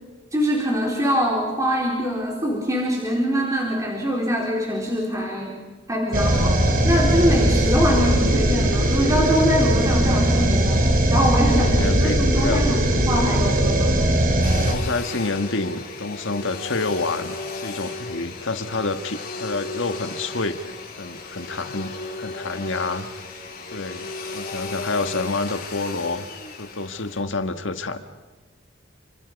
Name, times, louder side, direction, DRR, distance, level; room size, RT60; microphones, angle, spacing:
voice 1, 0.3-5.6 5.9-10.8 11.1-14.0, equal, 15° right, -1 dB, 3.9 m, -23 dB
sound 1, 6.1-14.7, right 1 dB, 45° right, 3.8 m, -19 dB
voice 2, 11.6-12.6 12.9-13.1 14.6-23.1 23.7-26.3 26.6-28.0, left 3 dB, 70° left, 8 dB, 1.7 m, -28 dB
Domestic sounds home sounds, 14.4-27.2, left 3 dB, 50° left, 4.4 m, -35 dB
29.5 x 26.5 x 5.4 m, 1.4 s
head